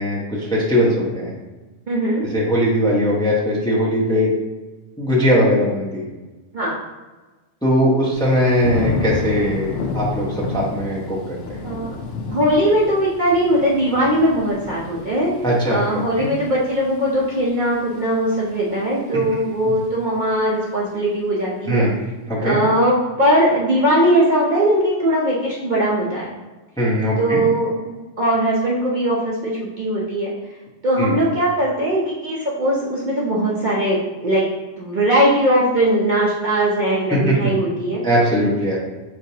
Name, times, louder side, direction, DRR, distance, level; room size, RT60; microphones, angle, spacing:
voice 1, 0.0-1.3 2.2-4.3 5.0-6.0 7.6-11.6 15.4-16.3 21.7-21.9 22.3-22.6 26.8-27.4 31.0-31.1 37.1-37.3 38.0-38.8, equal, 5° left, -6 dB, 0.9 m, -20 dB
voice 2, 1.9-2.2 6.5-6.8 11.6-12.0 12.3-15.3 15.6-21.9 22.4-26.3 27.2-30.3 30.8-34.4 34.8-38.0, right 1 dB, 45° right, -5 dB, 0.8 m, -20 dB
Thunder / Rain, 8.1-19.1 19.5-19.9, left 4 dB, 65° left, 0.7 m, -31 dB
5.7 x 3.3 x 2.8 m, 1.2 s
omnidirectional pair, 1.3 m